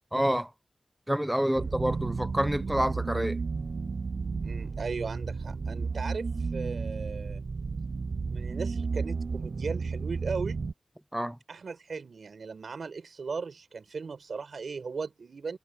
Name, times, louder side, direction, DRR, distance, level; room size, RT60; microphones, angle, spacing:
voice 1, 0.1-0.5 1.1-3.4 11.1-11.4, equal, 10° right, 0.9 m, -28 dB
voice 2, 1.4-1.8 2.5-2.9 4.4-7.4 8.3-10.6 11.5-15.6, right 5 dB, 85° right, 6.3 m, -37 dB
sound 1, 1.6-10.7, right 4 dB, 70° right, 0.4 m, -33 dB
wide cardioid pair, 65°, 0 cm